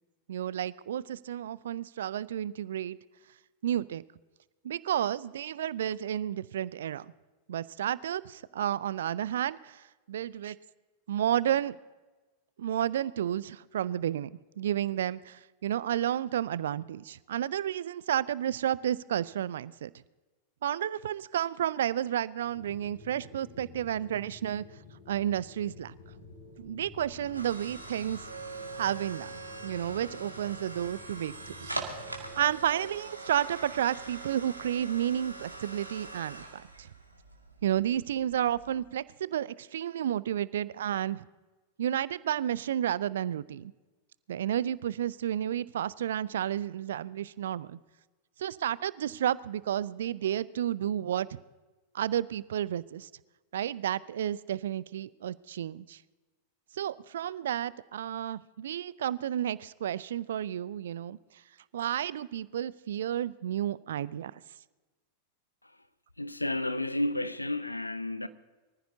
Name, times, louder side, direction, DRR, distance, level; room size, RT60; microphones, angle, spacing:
voice 1, 0.3-3.0 3.6-4.0 4.6-7.1 7.5-10.6 11.1-11.8 12.6-19.9 20.6-24.6 25.1-25.9 26.6-28.2 28.8-29.3 29.6-31.8 32.4-36.9 37.6-41.3 41.8-43.7 44.3-47.8 48.4-51.4 51.9-53.1 53.5-56.0 56.7-61.2 61.7-64.4, right 10 dB, 60° right, 0.4 m, -31 dB
sound 1, 22.4-32.6, left 4 dB, 50° left, 6.3 m, -51 dB
sound 2, 26.0-38.8, right 3 dB, 85° right, 1.9 m, -43 dB
voice 2, 66.2-68.3, left 1 dB, 85° left, 0.6 m, -32 dB
23.5 x 14.5 x 2.8 m
figure-of-eight pair, 90°, 0 cm